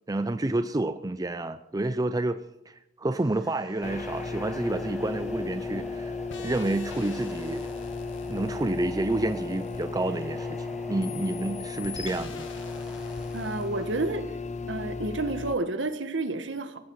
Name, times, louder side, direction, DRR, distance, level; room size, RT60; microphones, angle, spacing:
voice 1, 0.1-2.4 2.7-7.6 8.3-12.5, right 2 dB, 20° right, 0.5 m, -29 dB
sound 1, 3.2-14.3, equal, 5° right, 1.4 m, -44 dB
sound 2, 3.8-15.6, left 4 dB, 35° left, 0.7 m, -35 dB
sound 3, 6.3-10.6 11.0-13.7, left 6 dB, 75° left, 1.9 m, -46 dB
voice 2, 13.3-14.4 14.7-16.8, right 2 dB, 70° right, 1.5 m, -30 dB
18.0 x 15.0 x 4.8 m
head